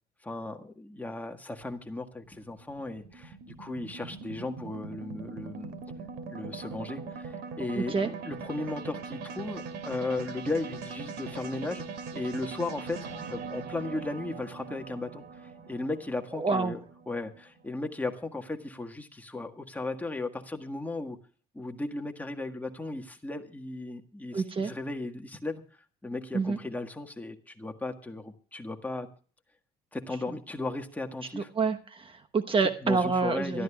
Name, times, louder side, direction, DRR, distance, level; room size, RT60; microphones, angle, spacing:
voice 1, 0.2-5.8 6.3-11.8 12.1-13.0 13.3-15.2 15.7-16.8 17.1-21.2 21.5-25.6 26.0-29.1 29.9-31.5 32.8-33.6, left 2 dB, 10° left, 4 dB, 1.7 m, -36 dB
sound 1, 1.6-18.0, right 4 dB, 75° right, 2.8 m, -41 dB
voice 2, 7.8-8.1 16.4-16.7 24.3-24.7 26.3-26.6 31.3-33.6, right 4 dB, 30° right, 8 dB, 1.1 m, -27 dB
24.0 x 13.0 x 2.4 m, 0.40 s
cardioid pair, 110°, 17 cm